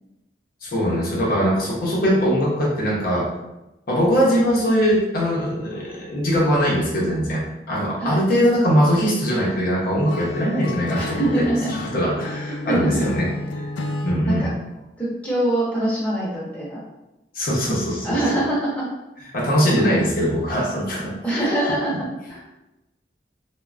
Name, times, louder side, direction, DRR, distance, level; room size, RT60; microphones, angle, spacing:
voice 1, 0.6-3.3 3.9-13.3 14.0-14.5 17.3-18.4 19.3-21.1, equal, 55° left, -5 dB, 0.7 m, -21 dB
Acoustic guitar / Strum, 10.1-14.2, left 2 dB, 75° left, 0.3 m, -31 dB
voice 2, 10.9-11.7 12.7-13.0 14.3-14.5 15.0-16.8 18.0-18.9 21.2-22.4, right 1 dB, 10° left, -7 dB, 0.8 m, -23 dB
3.1 x 2.1 x 2.4 m, 0.96 s
head